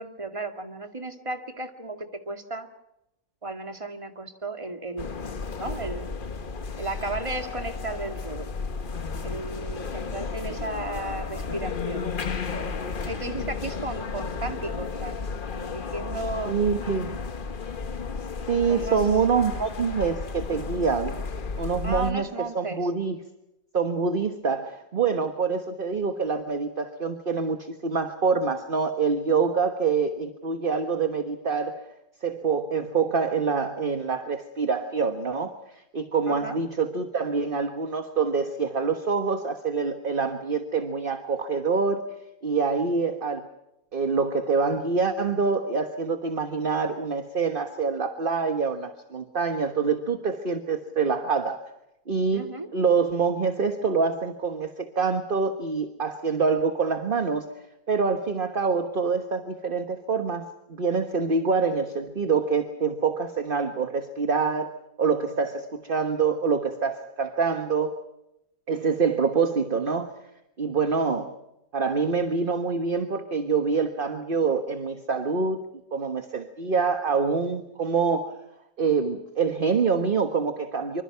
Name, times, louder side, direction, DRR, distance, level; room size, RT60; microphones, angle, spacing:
voice 1, 0.0-2.7 3.4-5.1 5.6-6.1 6.8-8.5 9.2-12.1 13.1-15.2 15.5-16.6 18.7-19.0 21.8-22.9 36.3-36.6 52.3-52.7, right 2 dB, 15° right, 6 dB, 2.0 m, -34 dB
sound 1, 5.0-22.1, left 4 dB, 35° left, 1.0 m, -33 dB
voice 2, 16.4-17.2 18.5-21.2 21.6-22.3 22.5-23.2 23.7-31.8 32.2-42.0 42.4-43.5 43.9-51.6 52.1-57.5 57.9-68.0 68.7-70.1 70.6-71.3 71.7-75.6 75.9-78.3 78.8-81.0, right 5 dB, 30° right, 8 dB, 1.3 m, -26 dB
26.0 x 25.0 x 5.7 m, 0.87 s
omnidirectional pair, 2.0 m